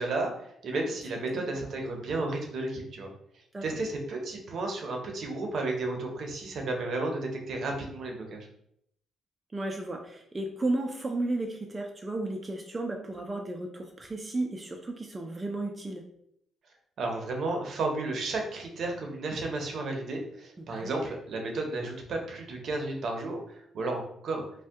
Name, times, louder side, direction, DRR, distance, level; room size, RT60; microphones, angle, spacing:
voice 1, 0.0-3.1 3.6-8.5 17.0-24.4, right 2 dB, 60° right, 2 dB, 0.6 m, -33 dB
voice 2, 9.5-16.0 20.6-20.9, right 2 dB, 25° right, 2 dB, 0.4 m, -33 dB
2.6 x 2.1 x 3.4 m, 0.72 s
cardioid pair, 90°, 0 cm